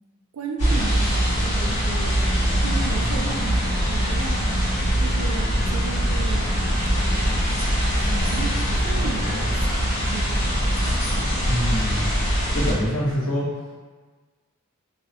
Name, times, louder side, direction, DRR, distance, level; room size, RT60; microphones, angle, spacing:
voice 1, 0.3-2.2 2.6-4.4 5.0-6.5 8.0-11.3, right 3 dB, 70° right, 1 dB, 0.4 m, -34 dB
sound 1, 0.6-12.7, equal, 90° left, 1.2 m, -22 dB
voice 2, 11.5-12.1 12.5-13.4, equal, 70° left, -8 dB, 0.9 m, -25 dB
2.7 x 2.0 x 2.7 m, 1.4 s
head